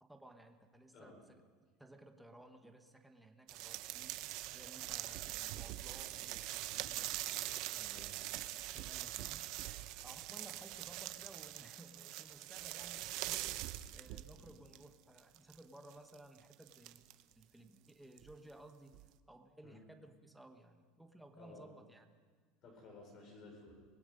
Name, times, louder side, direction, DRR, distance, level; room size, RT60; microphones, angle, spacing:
voice 1, 0.0-1.4 1.8-4.2 4.5-7.3 7.7-8.4 8.7-9.5 10.0-13.5 13.9-17.1 17.3-19.0 19.3-22.2, right 1 dB, ahead, 5 dB, 1.1 m, -58 dB
voice 2, 0.9-1.2 7.9-8.1 10.5-10.6 14.4-14.5 19.6-19.8 21.4-21.7 22.6-23.8, left 3 dB, 40° left, 1 dB, 5.3 m, -56 dB
sound 1, 3.5-14.8 15.2-17.4 18.2-18.3 18.9-19.1, right 16 dB, 50° right, 0.7 m, -43 dB
25.0 x 20.0 x 5.3 m, 1.6 s
cardioid pair, 170°, 0 cm